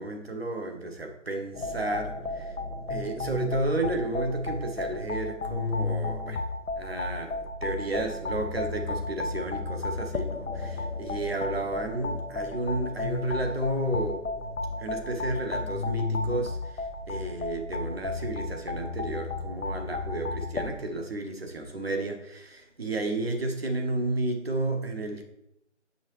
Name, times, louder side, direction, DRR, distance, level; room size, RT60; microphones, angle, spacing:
voice 1, 0.0-2.6 2.9-6.4 6.8-14.2 14.8-25.2, right 2 dB, 55° right, 1.0 m, -32 dB
sound 1, 1.5-20.7, left 3 dB, 90° left, 0.7 m, -33 dB
6.8 x 5.5 x 3.1 m
figure-of-eight pair, 165°, 36 cm